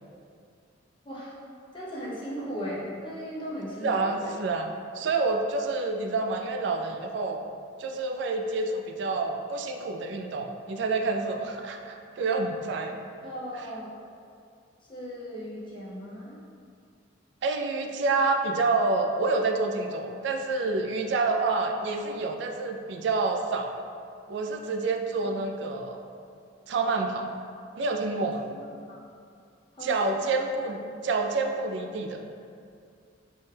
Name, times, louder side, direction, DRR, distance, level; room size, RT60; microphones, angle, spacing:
voice 1, 1.0-1.3 1.7-4.3 12.9-13.0 13.2-13.9 14.9-16.4 28.5-29.1 29.8-30.1, equal, 25° left, -7 dB, 0.7 m, -37 dB
voice 2, 3.8-4.7 4.9-7.4 7.8-12.9 17.4-23.7 24.3-26.0 26.7-27.3 27.8-28.5 29.8-32.3, right 3 dB, 65° right, 4 dB, 0.3 m, -28 dB
4.3 x 2.2 x 3.3 m, 2.3 s
head